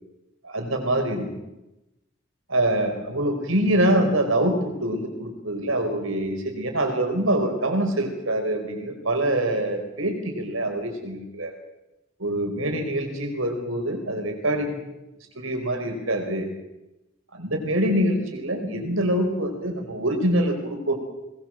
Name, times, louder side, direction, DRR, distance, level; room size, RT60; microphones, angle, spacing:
voice 1, 0.4-1.3 2.5-11.5 12.2-14.8 15.3-16.5 17.3-21.0, right 1 dB, 70° right, 5 dB, 5.0 m, -25 dB
21.5 x 20.5 x 7.7 m, 0.96 s
head